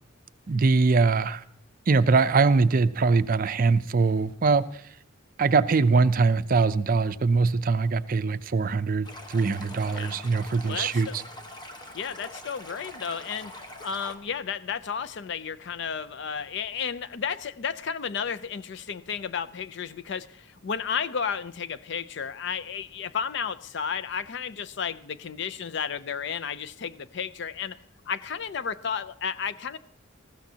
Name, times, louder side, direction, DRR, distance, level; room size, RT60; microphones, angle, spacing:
voice 1, 0.5-1.4 1.9-4.9 5.4-11.2, right 4 dB, 45° right, 13 dB, 0.5 m, -22 dB
Stream, 9.0-14.1, left 1 dB, 20° left, 1.2 m, -43 dB
voice 2, 9.9-10.2 10.6-11.1 11.9-27.8 28.1-29.8, left 6 dB, 60° left, 14 dB, 0.5 m, -33 dB
19.5 x 15.0 x 2.8 m, 0.68 s
head